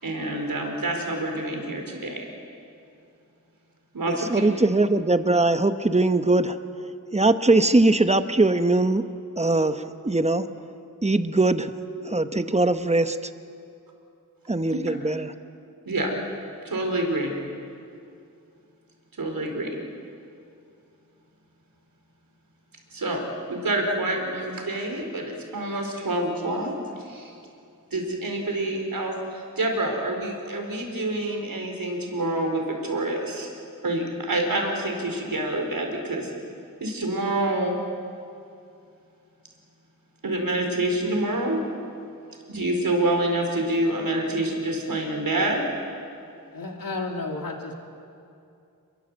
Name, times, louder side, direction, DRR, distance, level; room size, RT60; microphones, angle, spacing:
voice 1, 0.0-2.3 3.9-4.4 14.7-14.8 15.8-16.1 16.6-17.3 19.2-19.8 22.9-23.2 23.5-27.3 27.9-33.5 33.8-36.3 36.8-37.8 40.2-41.6 42.5-45.6, right 1 dB, 85° right, 2 dB, 4.7 m, -27 dB
voice 2, 4.1-6.6 7.1-9.0 9.4-10.5 11.0-11.7 12.0-13.2 14.5-15.3, right 2 dB, 20° right, 10 dB, 1.1 m, -21 dB
voice 3, 46.5-47.7, left 3 dB, 85° left, 2 dB, 2.7 m, -32 dB
27.5 x 22.0 x 8.0 m, 2.5 s
wide cardioid pair, 85°, 34 cm